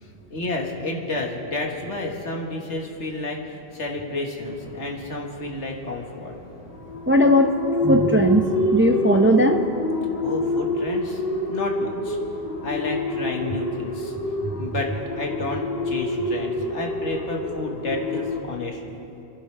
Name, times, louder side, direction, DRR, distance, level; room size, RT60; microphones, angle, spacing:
voice 1, 0.0-6.3 10.2-11.2 11.5-12.2 12.6-14.1 14.6-14.9 15.2-18.8, left 2 dB, 85° left, 0 dB, 1.9 m, -30 dB
sound 1, 4.5-18.4, left 1 dB, 55° left, 2.0 m, -27 dB
voice 2, 7.1-9.7 14.5-14.7, equal, 15° right, 5 dB, 0.4 m, -18 dB
28.5 x 11.0 x 3.3 m, 2.7 s
omnidirectional pair, 1.1 m